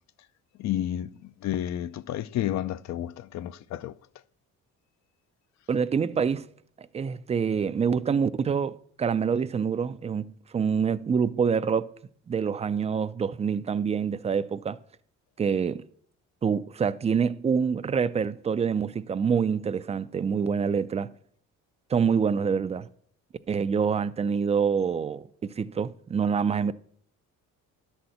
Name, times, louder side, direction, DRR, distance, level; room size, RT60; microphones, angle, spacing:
voice 1, 0.6-3.9, left 12 dB, 60° left, 0.5 m, -31 dB
voice 2, 5.7-6.4 6.9-11.9 12.3-14.8 15.4-15.8 16.4-21.1 21.9-22.9 23.5-26.7, right 6 dB, 20° right, 0.3 m, -26 dB
11.0 x 4.3 x 7.8 m
cardioid pair, 115°, 32 cm